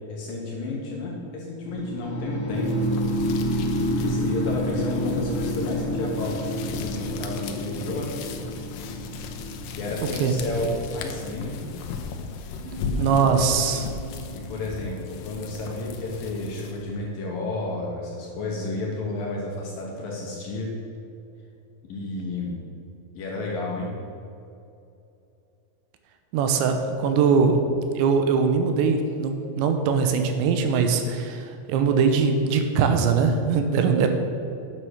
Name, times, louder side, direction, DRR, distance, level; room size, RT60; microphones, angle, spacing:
voice 1, 0.1-2.7 3.9-8.1 9.7-11.7 14.3-20.7 21.8-22.6 23.1-23.9, left 2 dB, 65° left, -2 dB, 2.3 m, -32 dB
sound 1, 1.6-11.6, equal, 40° left, 2.7 m, -29 dB
sound 2, 2.5-17.0, left 5 dB, 85° left, 3.0 m, -36 dB
sound 3, 12.6-18.0, right 4 dB, 55° right, 4.7 m, -44 dB
voice 2, 13.0-13.9 26.3-27.6 27.9-34.1, right 5 dB, 80° right, 6 dB, 3.1 m, -21 dB
9.7 x 7.6 x 6.5 m, 2.7 s
omnidirectional pair, 5.2 m